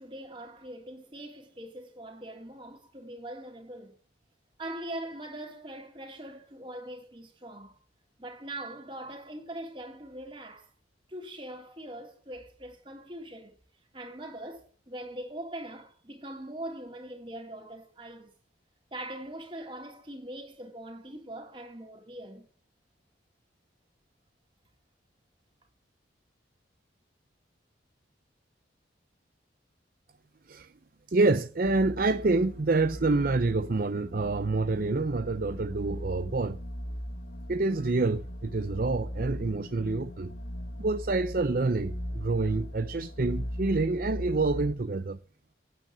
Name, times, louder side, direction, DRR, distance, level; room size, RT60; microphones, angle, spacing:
voice 1, 0.0-4.0 4.6-7.8 8.2-10.7 11.1-13.6 13.9-18.3 18.9-22.5, right 1 dB, 25° right, 3.2 m, -42 dB
voice 2, 31.1-36.6 37.5-40.3 40.8-45.2, right 3 dB, 50° right, 0.6 m, -27 dB
sound 1, 31.6-44.7, equal, 55° left, 1.7 m, -39 dB
9.2 x 9.0 x 8.7 m
head